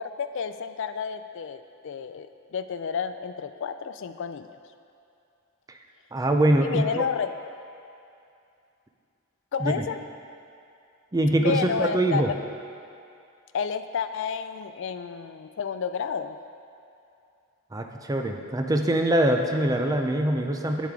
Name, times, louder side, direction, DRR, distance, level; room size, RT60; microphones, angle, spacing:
voice 1, 0.0-4.5 6.6-7.3 9.5-10.0 11.4-12.4 13.5-16.4, left 6 dB, 55° left, 10 dB, 0.3 m, -31 dB
voice 2, 6.1-7.0 9.6-9.8 11.1-12.3 17.7-20.9, right 1 dB, 15° right, 4 dB, 0.4 m, -23 dB
9.2 x 8.2 x 3.7 m, 2.6 s
head